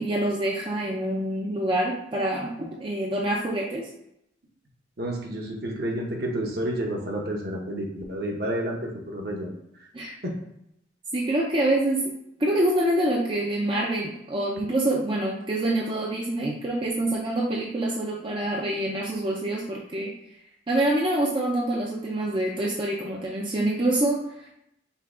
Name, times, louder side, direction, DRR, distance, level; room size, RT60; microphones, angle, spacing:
voice 1, 0.0-3.9 9.9-10.2 11.1-12.1 12.4-20.1 20.7-24.5, right 1 dB, 25° right, -2 dB, 0.5 m, -26 dB
voice 2, 5.0-9.5 10.2-10.3, right 1 dB, 55° right, 0 dB, 0.9 m, -30 dB
5.5 x 2.3 x 3.7 m, 0.80 s
head